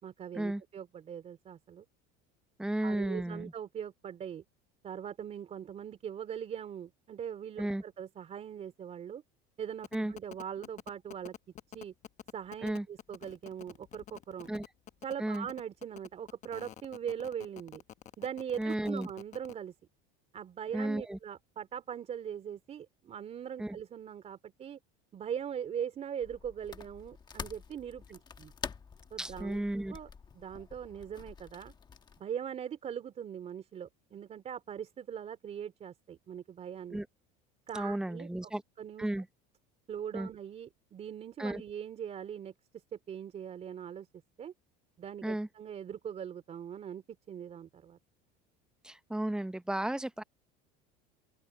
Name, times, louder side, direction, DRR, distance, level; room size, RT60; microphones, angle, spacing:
voice 1, 0.0-1.9 2.8-4.4 4.8-9.2 9.6-11.3 11.7-11.9 12.3-14.5 15.0-17.8 18.2-19.7 20.3-24.8 25.1-28.5 29.1-29.6 29.9-30.1 30.3-31.7 32.2-37.0 37.7-38.5 38.8-39.1 39.9-42.5 42.9-44.1 44.4-44.5 45.0-48.0, right 8 dB, 35° right, 3.5 m, -41 dB
voice 2, 2.6-3.5 7.6-7.8 9.9-10.1 12.6-12.9 14.5-14.6 15.2-15.5 18.6-19.1 20.7-21.2 23.6-23.8 29.2-30.0 36.9-37.1 37.7-38.6 39.0-39.3 40.1-40.3 41.4-41.6 45.2-45.5 48.8-50.2, right 1 dB, 5° right, 0.7 m, -33 dB
sound 1, 9.8-19.5, left 10 dB, 35° left, 1.3 m, -48 dB
sound 2, 26.2-32.2, left 6 dB, 20° left, 1.2 m, -47 dB
open air
cardioid pair, 140°, 20 cm